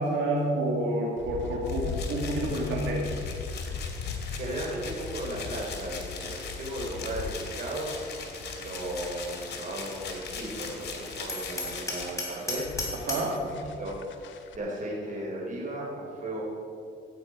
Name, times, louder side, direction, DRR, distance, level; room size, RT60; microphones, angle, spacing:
voice 1, 0.0-3.1 12.9-13.4, right 1 dB, 80° right, -2 dB, 1.9 m, -29 dB
sound 1, 1.2-14.6, left 5 dB, 70° left, 1.0 m, -39 dB
sound 2, 1.6-12.8, left 5 dB, 55° left, 2.3 m, -40 dB
voice 2, 3.9-7.9 8.5-12.7 13.4-13.5 13.8-13.9 14.5-16.4, right 1 dB, 40° right, -3 dB, 3.4 m, -36 dB
Hammer, 11.3-13.4, left 2 dB, 15° left, 3.5 m, -34 dB
15.5 x 8.5 x 4.7 m, 2.5 s
cardioid pair, 90°, 20 cm